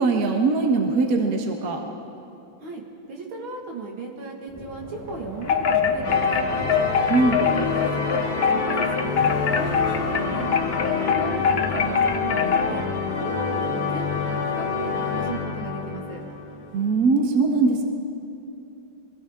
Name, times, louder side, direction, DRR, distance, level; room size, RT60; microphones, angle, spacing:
voice 1, 0.0-1.8 7.1-7.4 16.7-17.8, right 3 dB, 50° right, 3 dB, 1.6 m, -21 dB
voice 2, 3.1-6.7 7.2-9.2 9.5-12.9 13.2-16.2, right 3 dB, 75° right, 0 dB, 2.6 m, -36 dB
Wind, 4.5-13.2, left 1 dB, 15° left, 0.7 m, -36 dB
Wind chime, 5.4-12.8, left 7 dB, 55° left, 0.7 m, -23 dB
sound 1, 6.0-17.0, left 4 dB, 85° left, 2.5 m, -27 dB
23.5 x 16.5 x 3.6 m, 2.9 s
omnidirectional pair, 2.2 m